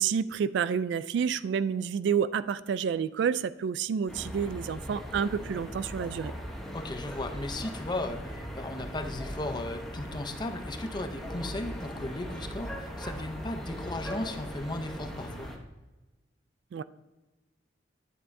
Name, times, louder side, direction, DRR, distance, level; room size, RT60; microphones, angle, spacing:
voice 1, 0.0-6.3 16.7-16.8, right 7 dB, 65° right, 15 dB, 0.3 m, -29 dB
sound 1, 4.1-15.6, equal, ahead, 1.0 m, -39 dB
voice 2, 6.7-15.5, left 2 dB, 25° left, 7 dB, 0.6 m, -36 dB
10.0 x 7.7 x 2.7 m, 1.1 s
head